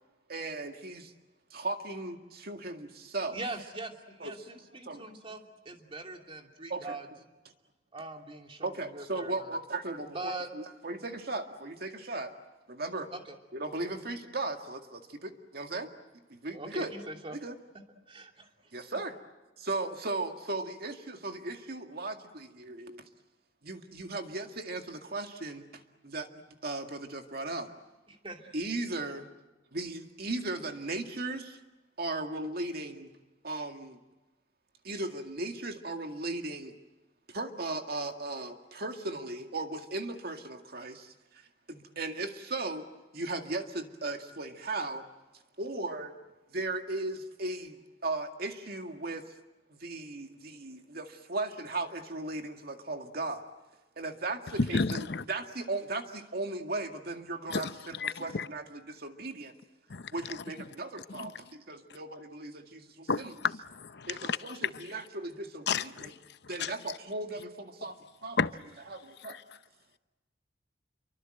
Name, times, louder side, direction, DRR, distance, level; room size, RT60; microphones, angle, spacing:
voice 1, 0.3-1.1 1.5-3.4 4.2-4.3 4.8-5.1 6.7-7.0 8.6-12.3 12.7-13.1 13.5-15.9 16.3-16.9 17.3-17.6 18.7-19.2 19.6-23.1 23.6-26.3 26.6-27.7 28.5-29.3 29.7-31.6 32.0-33.1 33.4-34.0 34.8-36.7 37.3-41.1 41.7-42.8 43.1-45.1 45.6-46.1 46.5-49.3 49.7-53.5 54.0-59.5 60.1-63.3 64.1-66.1 66.5-68.0 68.2-68.4 68.9-69.4, right 2 dB, 55° right, 2.1 m, -37 dB
voice 2, 3.3-7.1 7.9-9.5 10.0-10.5 10.9-11.0 13.1-13.4 16.5-17.4 18.1-18.5 28.1-28.5, right 2 dB, 30° right, 2.8 m, -42 dB
voice 3, 54.6-55.2 57.5-58.5 59.9-60.1 61.1-61.3 63.1-64.6 65.7-66.1 66.6-66.7 68.4-68.5 69.3-69.4, left 4 dB, 65° left, 0.8 m, -32 dB
28.0 x 24.0 x 7.9 m
head